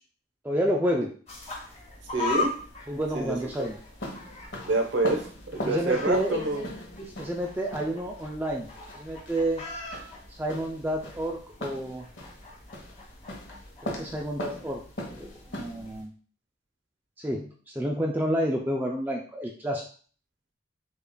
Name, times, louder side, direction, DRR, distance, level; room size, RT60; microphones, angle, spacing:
voice 1, 0.4-1.1 2.9-3.8 5.6-6.3 7.2-8.7 8.9-9.6 10.3-12.1 13.8-14.8 15.1-16.1 17.2-19.8, right 1 dB, 10° right, -1 dB, 0.3 m, -29 dB
sound 1, 1.3-16.0, left 3 dB, 35° left, 0.9 m, -40 dB
sound 2, 1.6-16.0, left 1 dB, 80° left, 1.1 m, -40 dB
voice 2, 2.1-2.5 3.1-3.7 4.6-6.6, right 2 dB, 85° right, 2 dB, 0.9 m, -27 dB
6.5 x 2.4 x 2.2 m, 0.42 s
head